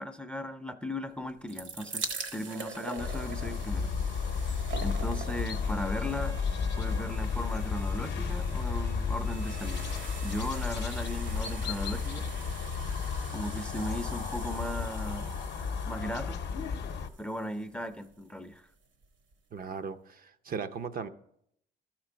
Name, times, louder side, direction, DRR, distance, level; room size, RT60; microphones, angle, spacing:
voice 1, 0.0-2.1 2.3-3.9 4.3-6.4 6.8-9.9 10.2-12.3 13.3-15.3 15.8-16.4 17.2-18.7, left 1 dB, 5° left, 0.5 m, -37 dB
sound 1, 1.2-18.3 19.0-19.1 19.3-19.4, right 5 dB, 70° right, 1.1 m, -44 dB
sound 2, 3.0-17.1, left 5 dB, 60° left, 0.7 m, -33 dB
sound 3, 5.8-12.7, right 3 dB, 90° right, 2.2 m, -55 dB
voice 2, 19.5-21.1, right 6 dB, 45° right, 0.5 m, -37 dB
13.0 x 4.4 x 5.0 m
cardioid pair, 90°, 20 cm